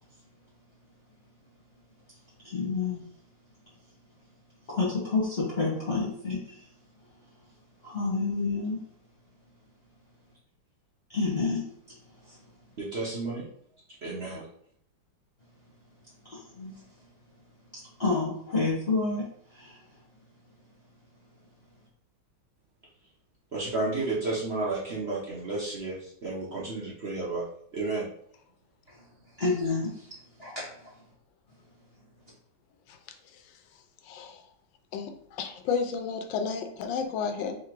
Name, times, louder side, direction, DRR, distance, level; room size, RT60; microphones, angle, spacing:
voice 1, 2.4-3.0 4.6-6.7 7.8-8.8 11.1-12.5 16.2-17.1 17.7-19.8 28.9-29.1 29.4-30.9, left 3 dB, 35° left, -7 dB, 1.2 m, -30 dB
voice 2, 12.8-13.5 14.0-14.5 23.5-27.5 27.7-28.1, right 3 dB, 50° right, -5 dB, 0.8 m, -32 dB
voice 3, 34.1-34.4 34.9-37.6, left 5 dB, 80° left, 5 dB, 1.3 m, -32 dB
3.8 x 2.7 x 4.5 m, 0.65 s
omnidirectional pair, 2.1 m